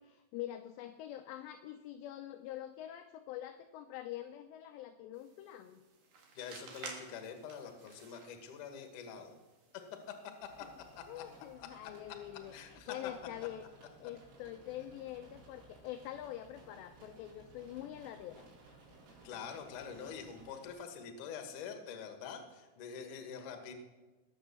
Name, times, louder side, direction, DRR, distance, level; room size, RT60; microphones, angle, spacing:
voice 1, 0.0-5.8 11.1-13.7 14.0-18.5, left 12 dB, 85° left, 7 dB, 2.5 m, -45 dB
sound 1, 5.1-11.6, right 4 dB, 55° right, 2.9 m, -54 dB
voice 2, 6.4-9.4 9.7-10.2 10.4-10.7 11.0-11.2 11.6-11.9 12.5-13.1 19.2-23.7, left 7 dB, 65° left, 5 dB, 2.2 m, -46 dB
sound 2, 10.4-20.7, right 3 dB, 85° right, 7.0 m, -59 dB
19.0 x 7.3 x 6.9 m, 1.2 s
omnidirectional pair, 5.6 m